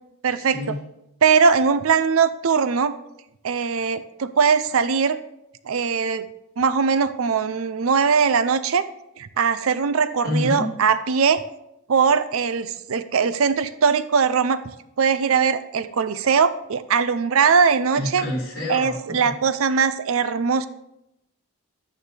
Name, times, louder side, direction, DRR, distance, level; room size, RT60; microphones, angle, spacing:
voice 1, 0.2-0.8 1.2-2.9 3.4-5.2 5.7-6.2 6.6-8.8 9.2-11.4 11.9-14.6 15.0-18.2 18.7-20.7, right 6 dB, 70° right, 13 dB, 0.5 m, -20 dB
voice 2, 10.2-10.6 17.9-19.0, left 2 dB, 60° left, -4 dB, 4.1 m, -27 dB
11.5 x 8.9 x 3.3 m, 0.84 s
head